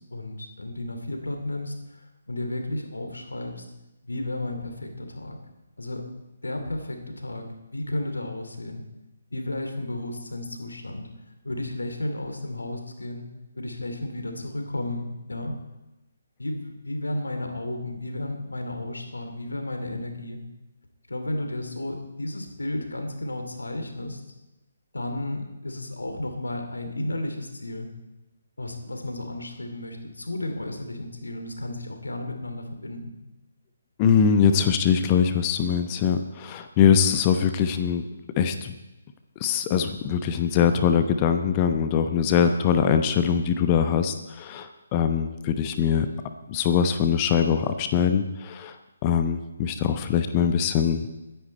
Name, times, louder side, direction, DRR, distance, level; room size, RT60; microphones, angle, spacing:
voice 1, 0.1-3.7 4.0-5.4 5.8-6.1 6.4-7.5 7.7-8.8 9.3-11.1 11.4-13.3 13.5-15.5 16.4-20.4 21.1-24.2 24.9-27.9 28.6-33.2, left 1 dB, 75° left, 5 dB, 2.8 m, -33 dB
voice 2, 34.0-38.0 38.4-38.7 39.4-46.1 46.5-48.8 49.0-51.1, left 7 dB, 25° left, 8 dB, 0.9 m, -22 dB
22.0 x 10.0 x 4.3 m, 1.0 s
figure-of-eight pair, 140°, 0 cm